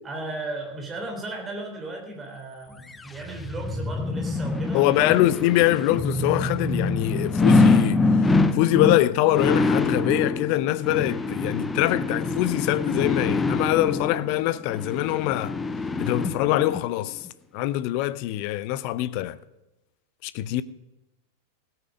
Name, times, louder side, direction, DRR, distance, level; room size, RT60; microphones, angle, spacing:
voice 1, 0.0-5.2, right 2 dB, 20° right, 3.7 m, -35 dB
sound 1, 2.9-16.8 17.3-17.4, left 3 dB, 10° left, 0.8 m, -25 dB
voice 2, 4.7-8.0 8.5-15.5 16.0-17.3 17.5-19.4 20.2-20.6, left 15 dB, 45° left, 0.6 m, -23 dB
17.0 x 9.1 x 5.2 m
figure-of-eight pair, 90°, 0 cm